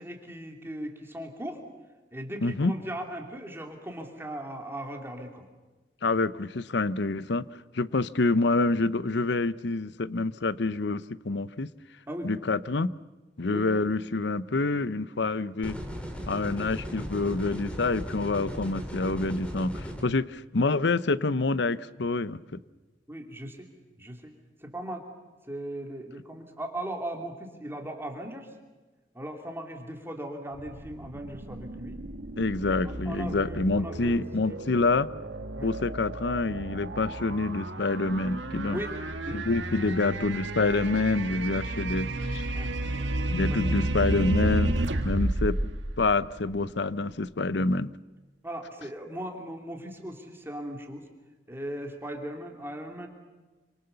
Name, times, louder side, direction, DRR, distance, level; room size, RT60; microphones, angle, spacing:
voice 1, 0.0-1.6 2.1-5.4 12.1-12.3 13.5-13.8 23.1-23.7 24.0-24.3 24.6-25.0 25.5-28.5 29.1-32.0 33.1-34.6 35.6-35.7 38.7-39.4 42.5-42.7 43.5-43.6 48.4-51.1 51.5-53.1, right 1 dB, 15° right, 3 dB, 2.8 m, -38 dB
voice 2, 2.4-2.7 6.0-7.5 7.7-11.7 12.2-12.9 13.4-15.8 16.3-22.6 32.4-35.1 35.6-38.8 39.3-42.5 43.3-45.6 46.0-47.9, left 3 dB, 65° left, 16 dB, 0.8 m, -27 dB
sound 1, 15.6-20.0, equal, 5° left, 2.9 m, -37 dB
sound 2, 30.5-46.8, right 1 dB, 80° right, 1.6 m, -32 dB
27.5 x 25.5 x 6.9 m, 1.2 s
head